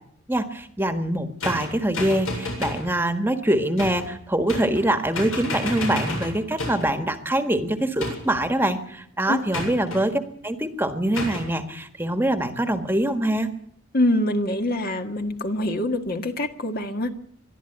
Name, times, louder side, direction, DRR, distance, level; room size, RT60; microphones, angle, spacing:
voice 1, 0.3-13.5, right 1 dB, 10° right, 9 dB, 1.5 m, -24 dB
sound 1, 1.4-2.9 3.8-4.1 4.5-4.9 5.1-6.9 8.0-8.5 9.5-10.0 11.2-11.5, left 2 dB, 90° left, 7.7 m, -31 dB
voice 2, 13.9-17.1, left 1 dB, 45° left, 6 dB, 1.7 m, -24 dB
22.0 x 13.0 x 10.0 m, 0.66 s
head